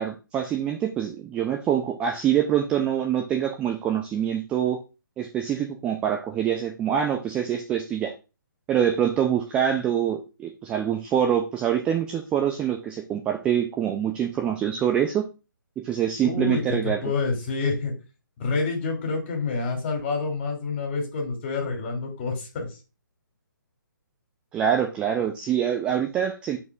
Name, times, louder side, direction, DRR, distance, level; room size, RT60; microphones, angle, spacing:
voice 1, 0.0-4.8 5.2-8.1 8.7-15.3 15.8-17.1 24.5-26.6, right 9 dB, 10° right, 3 dB, 0.4 m, -25 dB
voice 2, 16.2-17.9 18.4-22.8, left 3 dB, 35° left, 1 dB, 2.7 m, -28 dB
10.5 x 4.4 x 2.4 m, 0.30 s
figure-of-eight pair, 145°, 11 cm